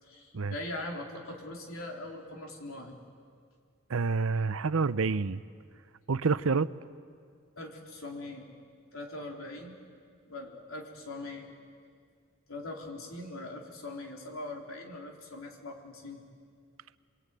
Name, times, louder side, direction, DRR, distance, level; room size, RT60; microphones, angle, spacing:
voice 1, 0.0-2.9 7.6-8.5 8.9-9.8 10.3-11.5 12.5-16.2, left 2 dB, 85° left, 1 dB, 3.8 m, -41 dB
voice 2, 3.9-5.4 6.1-6.7, right 4 dB, 85° right, 15 dB, 0.7 m, -28 dB
27.0 x 23.0 x 9.2 m, 2.1 s
head